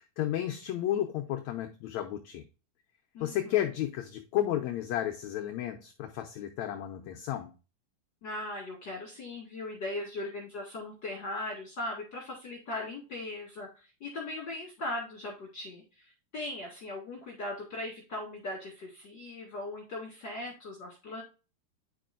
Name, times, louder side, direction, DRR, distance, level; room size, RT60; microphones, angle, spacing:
voice 1, 0.0-2.4 3.2-7.5, left 12 dB, 75° left, 1.7 m, -32 dB
voice 2, 3.1-3.7 8.2-21.2, left 2 dB, 40° left, 2.2 m, -39 dB
9.3 x 5.3 x 2.5 m
omnidirectional pair, 4.0 m